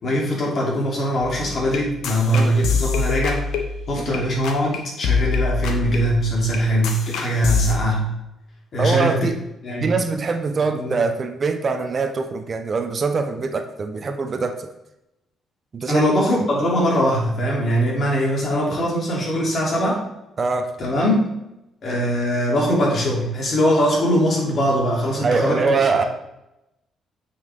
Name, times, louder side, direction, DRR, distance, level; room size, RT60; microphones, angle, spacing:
voice 1, 0.0-3.4 3.9-8.1 8.7-9.2 9.6-9.9 10.7-11.1 15.9-20.0 20.8-21.3 21.8-25.6 25.9-26.1, equal, 50° left, -3 dB, 3.1 m, -21 dB
sound 1, 1.2-4.2 4.4-4.8 5.0-7.8, left 5 dB, 85° left, 1.1 m, -25 dB
voice 2, 8.8-9.4 9.8-14.7 15.7-16.0 20.4-20.7 25.2-26.0, right 4 dB, 40° right, 7 dB, 0.8 m, -23 dB
9.2 x 5.7 x 3.6 m, 0.89 s
cardioid pair, 90°, 0 cm